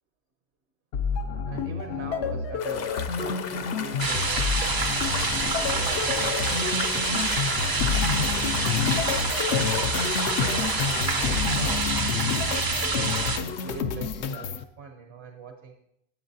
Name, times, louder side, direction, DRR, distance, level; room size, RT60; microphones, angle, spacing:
sound 1, 0.9-14.6, left 6 dB, 85° left, 0.9 m, -29 dB
voice 1, 1.4-4.6 5.0-7.9 8.3-9.7 10.4-12.4 13.0-15.7, right 5 dB, 80° right, 4 dB, 1.1 m, -42 dB
sound 2, 2.6-13.8, left 6 dB, 55° left, 0.5 m, -37 dB
sound 3, 4.0-13.4, right 4 dB, 40° right, 0.3 m, -27 dB
14.0 x 7.2 x 2.7 m, 0.77 s
omnidirectional pair, 1.1 m